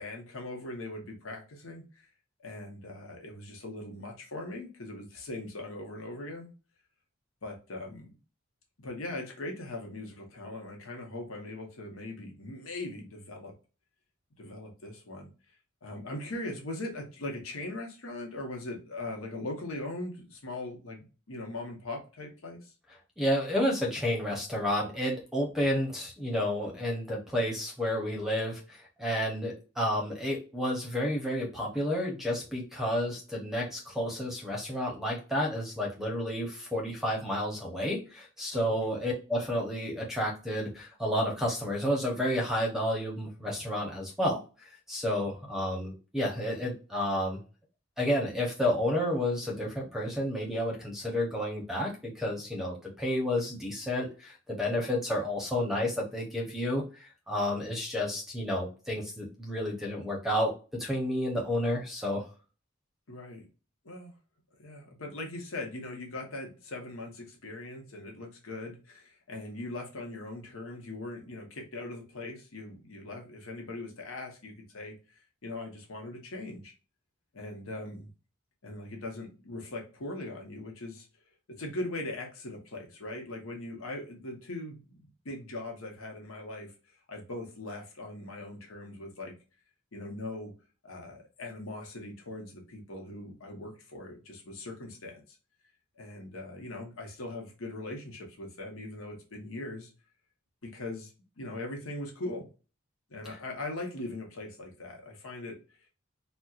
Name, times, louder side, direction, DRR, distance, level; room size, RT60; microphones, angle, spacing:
voice 1, 0.0-1.8 2.4-6.5 7.4-8.2 8.8-13.5 14.4-15.3 15.8-22.7 38.5-38.8 63.1-63.5 63.8-64.1 64.6-76.7 77.3-78.1 78.6-81.1 81.6-85.0 85.2-86.7 87.1-89.3 89.9-90.5 90.8-95.2 96.0-99.9 100.6-101.1 101.4-102.5 103.1-105.6, left 2 dB, 85° left, 1 dB, 1.0 m, -40 dB
voice 2, 23.2-47.4 48.0-62.2, left 1 dB, ahead, -1 dB, 0.7 m, -31 dB
4.2 x 2.2 x 2.4 m, 0.34 s
head